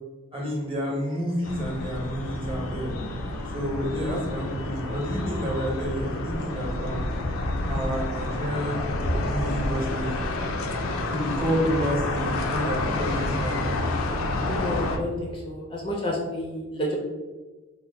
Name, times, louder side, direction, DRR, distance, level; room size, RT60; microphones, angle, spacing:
voice 1, 0.3-2.9 3.5-7.1 7.7-8.9 9.2-10.2 11.1-13.7, equal, 25° right, -2 dB, 0.8 m, -29 dB
sound 1, 1.4-15.0, left 2 dB, 80° left, 0.4 m, -29 dB
voice 2, 14.5-16.9, left 1 dB, 25° left, -2 dB, 0.4 m, -30 dB
3.5 x 2.1 x 3.3 m, 1.3 s
head